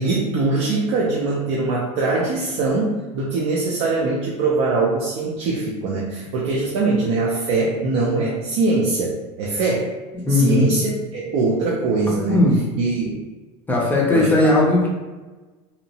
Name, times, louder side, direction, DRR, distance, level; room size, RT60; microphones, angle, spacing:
voice 1, 0.0-9.9 10.3-12.4 12.8-13.2 14.1-14.5, right 3 dB, 75° right, -4 dB, 0.5 m, -22 dB
voice 2, 10.2-10.7 12.3-12.6 13.7-14.9, left 2 dB, 10° left, -3 dB, 0.4 m, -17 dB
2.7 x 2.0 x 2.7 m, 1.2 s
cardioid pair, 150°, 15 cm